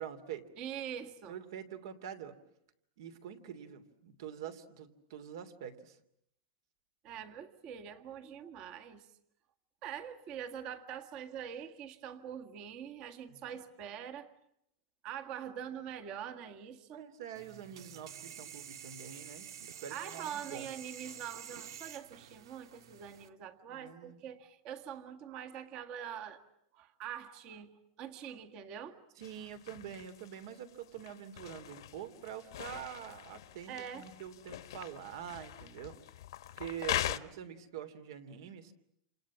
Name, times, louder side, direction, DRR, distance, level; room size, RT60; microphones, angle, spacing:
voice 1, 0.0-0.5 1.3-2.3 3.0-6.0 13.3-13.4 16.9-20.7 23.7-24.2 29.2-36.0 36.6-38.7, right 9 dB, 65° right, 10 dB, 3.1 m, -45 dB
voice 2, 0.6-1.4 7.0-9.1 9.8-14.3 15.0-17.1 19.9-26.4 26.7-27.7 28.0-29.0 33.7-34.1, right 9 dB, 35° right, 8 dB, 1.7 m, -44 dB
sound 1, 17.3-23.3, right 9 dB, 90° right, 2.1 m, -49 dB
sound 2, 29.2-37.2, left 13 dB, 80° left, 1.4 m, -42 dB
28.5 x 28.0 x 7.4 m, 0.76 s
supercardioid pair, 170°, 2 cm